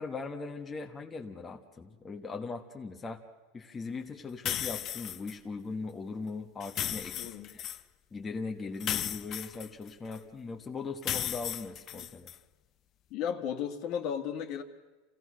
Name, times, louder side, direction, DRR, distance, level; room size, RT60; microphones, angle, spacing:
voice 1, 0.0-3.2 3.5-7.7 8.1-12.3, left 4 dB, 20° left, 3 dB, 1.3 m, -39 dB
sound 1, 4.5-5.3 6.6-7.8 8.8-10.2 11.0-12.4, left 11 dB, 35° left, 0.7 m, -35 dB
voice 2, 7.2-7.5 10.0-10.3 12.0-12.1 13.1-14.6, left 8 dB, 55° left, 7 dB, 1.9 m, -35 dB
27.5 x 16.5 x 6.4 m, 1.3 s
supercardioid pair, 130°, 0 cm